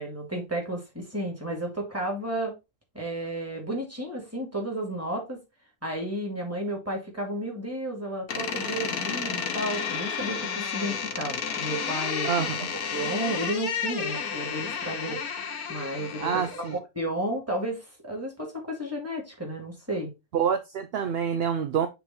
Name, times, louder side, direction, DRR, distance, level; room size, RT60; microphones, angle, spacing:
voice 1, 0.0-2.5 2.9-5.4 5.8-12.3 12.7-15.2 15.7-20.1, right 1 dB, 10° right, 2.3 m, -32 dB
Door, 8.3-16.8, left 6 dB, 80° left, 1.5 m, -32 dB
voice 2, 12.2-12.7 16.2-16.8 20.3-21.9, right 7 dB, 60° right, 0.6 m, -27 dB
6.8 x 3.6 x 4.2 m
omnidirectional pair, 1.6 m